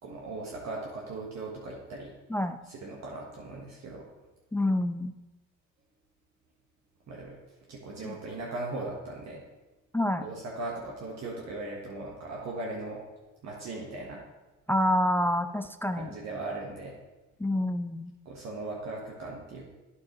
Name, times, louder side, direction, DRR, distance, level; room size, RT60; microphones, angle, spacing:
voice 1, 0.0-2.1 2.7-4.0 7.1-7.4 7.7-9.4 10.2-13.0 13.4-14.2 16.0-16.9 18.2-19.7, right 2 dB, 60° right, -2 dB, 1.3 m, -38 dB
voice 2, 4.5-5.1 8.0-8.1 9.9-10.2 14.7-16.1 17.4-18.1, left 1 dB, 10° left, 9 dB, 0.3 m, -27 dB
8.8 x 7.4 x 3.0 m, 1.1 s
cardioid pair, 90°, 30 cm